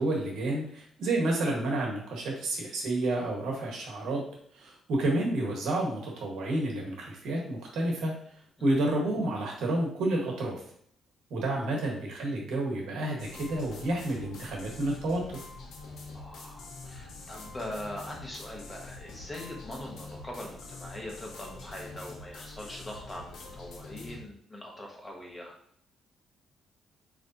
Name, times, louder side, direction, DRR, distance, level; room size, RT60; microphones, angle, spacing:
voice 1, 0.0-4.2 4.5-8.1 8.6-10.6 11.3-15.4, right 1 dB, 80° right, 0 dB, 1.3 m, -30 dB
sound 1, 13.2-24.2, left 3 dB, 70° left, 1.1 m, -45 dB
voice 2, 16.1-25.5, left 1 dB, 15° left, -1 dB, 1.3 m, -42 dB
5.0 x 3.2 x 2.7 m, 0.65 s
cardioid pair, 90°, 0 cm